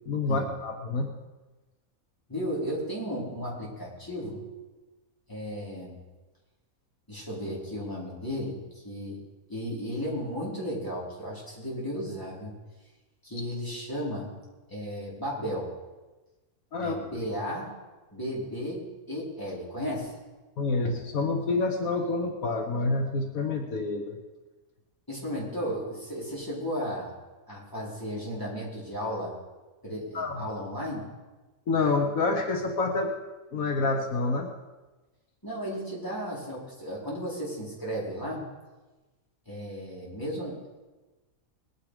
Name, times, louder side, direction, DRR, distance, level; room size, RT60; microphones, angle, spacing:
voice 1, 0.1-1.1 16.7-17.0 20.6-24.2 30.1-30.4 31.7-33.1 33.5-34.5, left 3 dB, 75° left, 3 dB, 1.6 m, -27 dB
voice 2, 2.3-4.4 5.3-6.0 7.1-9.2 9.5-12.5 13.2-14.3 14.7-15.7 16.8-17.7 18.1-18.8 19.1-20.1 25.1-27.1 27.5-29.3 29.8-31.1 35.4-38.5 39.4-40.6, equal, 15° left, -6 dB, 4.8 m, -34 dB
20.5 x 9.9 x 5.1 m, 1.2 s
omnidirectional pair, 1.5 m